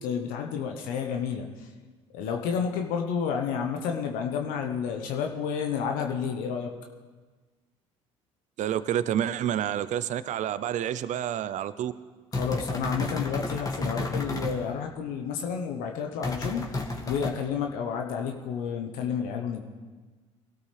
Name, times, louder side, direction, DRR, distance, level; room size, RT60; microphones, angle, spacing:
voice 1, 0.0-1.7 2.1-6.7 12.3-19.6, left 7 dB, 70° left, 3 dB, 1.2 m, -31 dB
voice 2, 8.6-11.9, right 10 dB, 55° right, 15 dB, 0.7 m, -29 dB
sound 1, 12.3-14.6 16.2-17.3, left 2 dB, 25° left, 2.2 m, -31 dB
21.5 x 13.0 x 3.5 m, 1.3 s
hypercardioid pair, 65°, 15 cm